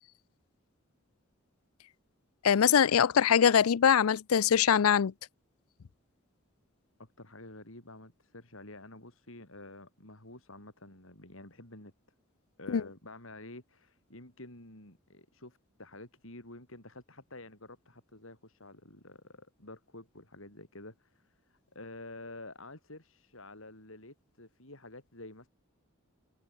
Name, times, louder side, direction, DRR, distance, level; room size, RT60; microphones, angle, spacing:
voice 1, 2.4-5.1 12.7-12.8, left 8 dB, 85° left, 0.5 m, -23 dB
voice 2, 7.0-11.9 12.6-25.5, left 2 dB, 70° left, 5.3 m, -49 dB
head